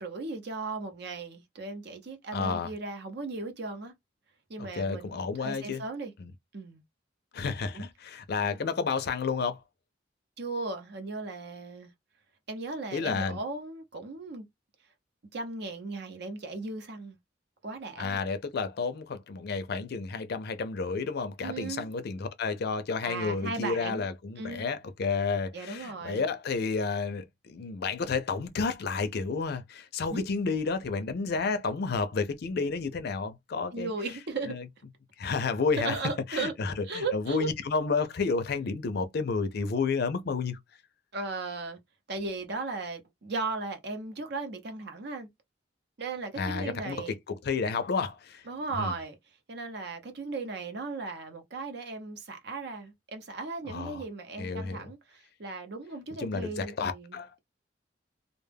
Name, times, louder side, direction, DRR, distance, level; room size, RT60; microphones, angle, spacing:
voice 1, 0.0-3.9 4.5-6.1 6.5-6.8 7.7-7.9 8.4-8.6 10.4-11.9 12.5-14.5 15.3-17.2 17.6-18.2 21.4-21.9 23.0-24.1 24.4-24.7 25.5-26.2 30.1-30.2 33.7-34.6 35.7-36.5 36.8-37.5 41.1-41.8 42.1-45.3 46.0-47.2 48.5-49.2 49.5-57.4, right 3 dB, 60° right, 0.7 m, -36 dB
voice 2, 2.3-2.7 4.6-5.8 6.2-6.3 7.3-9.6 12.9-13.4 18.0-33.9 34.5-34.7 35.2-35.9 36.3-40.6 46.4-48.4 48.7-48.9 53.7-54.0 54.4-54.8 56.2-57.4, left 4 dB, 55° left, 0.4 m, -31 dB
2.2 x 2.1 x 3.3 m
head